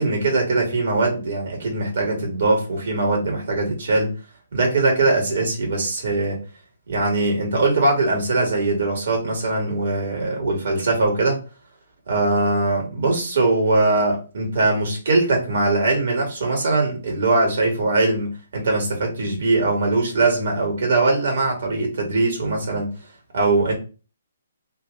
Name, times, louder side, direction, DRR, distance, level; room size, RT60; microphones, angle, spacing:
voice 1, 0.0-4.1 4.5-6.4 6.9-11.4 12.1-22.9 23.3-23.7, right 2 dB, 60° right, 1 dB, 2.5 m, -21 dB
3.9 x 3.1 x 3.9 m, 0.33 s
figure-of-eight pair, 135°, 0 cm